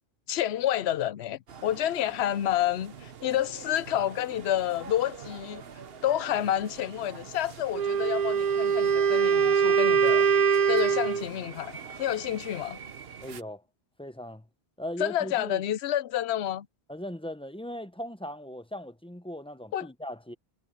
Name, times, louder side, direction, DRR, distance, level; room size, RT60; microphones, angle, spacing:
voice 1, 0.3-5.6 6.0-10.3 10.7-12.8 15.0-16.7 19.7-19.9, left 12 dB, 85° left, 0.9 m, -29 dB
sound 1, 1.5-13.4, right 6 dB, 70° right, 1.2 m, -45 dB
Wind instrument woodwind instrument, 7.7-11.3, right 7 dB, 45° right, 0.7 m, -23 dB
voice 2, 13.2-13.6 14.0-14.5 14.8-15.6 16.9-20.3, equal, 5° left, 0.7 m, -38 dB
omnidirectional pair, 1.1 m